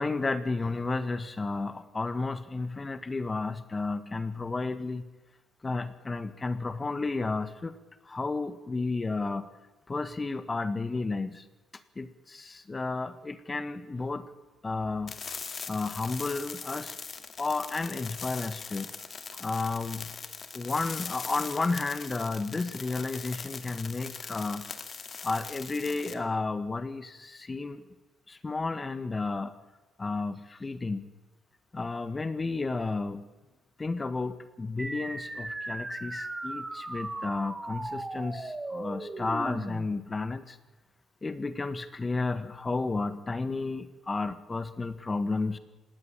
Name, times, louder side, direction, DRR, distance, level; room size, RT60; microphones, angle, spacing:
voice 1, 0.0-5.0 5.6-7.7 8.1-9.4 9.9-11.4 12.0-14.3 14.6-15.1 15.7-16.9 17.4-18.9 19.4-20.1 20.5-24.7 25.2-27.8 28.3-29.5 30.0-31.1 31.7-33.3 33.8-40.6 41.2-45.6, left 3 dB, 30° left, 13 dB, 1.6 m, -32 dB
sound 1, 15.1-26.1, left 5 dB, 45° left, 2.3 m, -41 dB
sound 2, 34.8-39.8, right 2 dB, 20° right, 2.6 m, -37 dB
18.5 x 17.0 x 9.1 m, 1.1 s
hypercardioid pair, 50°, 0 cm